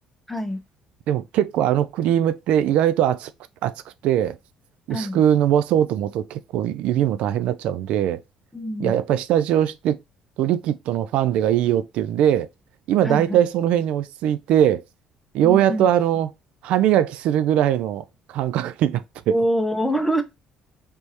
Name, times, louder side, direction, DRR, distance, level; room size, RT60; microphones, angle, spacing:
voice 1, 0.3-0.6 4.9-5.2 8.5-9.0 13.0-13.4 15.4-15.9 19.3-20.2, equal, 5° left, 0.9 m, -25 dB
voice 2, 1.1-3.3 3.6-3.7 4.0-4.4 4.9-8.2 8.8-10.0 10.4-12.5 12.9-14.8 15.3-16.3 16.6-19.4, right 10 dB, 75° right, 0.4 m, -21 dB
3.4 x 3.1 x 2.8 m
cardioid pair, 85°, 2 cm